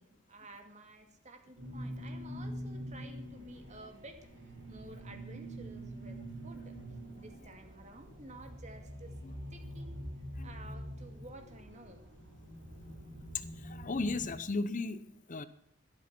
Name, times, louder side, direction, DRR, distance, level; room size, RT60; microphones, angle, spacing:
voice 1, 0.0-6.8 7.1-9.1 9.5-10.0 10.4-12.0, right 2 dB, 35° right, 5 dB, 2.3 m, -53 dB
sound 1, 1.6-14.3, equal, 65° right, 7.1 m, -45 dB
voice 2, 13.6-15.0 15.3-15.5, left 3 dB, 40° left, 14 dB, 0.7 m, -34 dB
13.0 x 12.0 x 6.0 m, 0.72 s
head